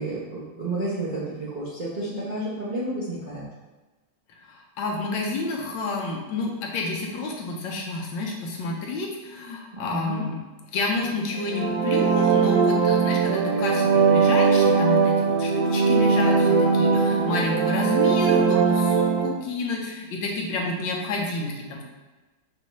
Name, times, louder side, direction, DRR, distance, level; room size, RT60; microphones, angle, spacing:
voice 1, 0.0-3.4 9.7-10.2 16.8-17.4, right 2 dB, 45° right, -10 dB, 0.5 m, -31 dB
voice 2, 4.3-10.4 10.7-21.8, left 3 dB, 75° left, 0 dB, 1.4 m, -29 dB
sound 1, 11.3-19.3, right 5 dB, 85° right, 1.7 m, -20 dB
5.4 x 2.6 x 3.0 m, 1.2 s
omnidirectional pair, 2.1 m